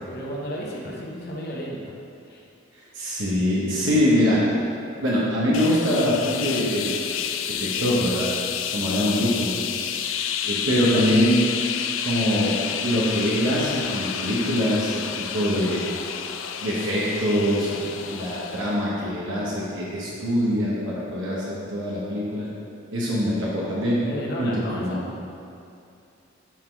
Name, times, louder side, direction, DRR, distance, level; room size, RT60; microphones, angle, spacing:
voice 1, 0.1-2.0 2.2-2.5 8.9-9.1 24.1-25.1, equal, 55° left, -3 dB, 0.9 m, -33 dB
voice 2, 2.9-4.6 5.0-8.3 8.7-9.6 10.4-11.4 12.0-12.6 12.8-15.8 16.6-22.5 22.9-24.0 24.4-25.1, equal, 75° right, -7 dB, 1.1 m, -24 dB
sound 1, 5.5-18.9, left 8 dB, 70° left, 0.4 m, -30 dB
7.5 x 3.8 x 4.6 m, 2.6 s
head